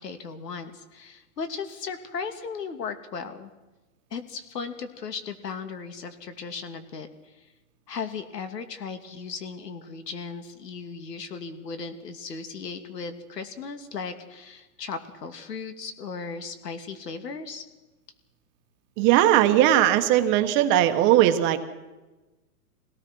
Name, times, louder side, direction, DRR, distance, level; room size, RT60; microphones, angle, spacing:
voice 1, 0.0-3.5 4.1-7.5 7.9-17.6, left 5 dB, 90° left, 8 dB, 2.9 m, -36 dB
voice 2, 19.0-21.6, right 12 dB, 25° right, 8 dB, 1.2 m, -19 dB
25.0 x 18.0 x 6.2 m, 1.1 s
hypercardioid pair, 150°, 47 cm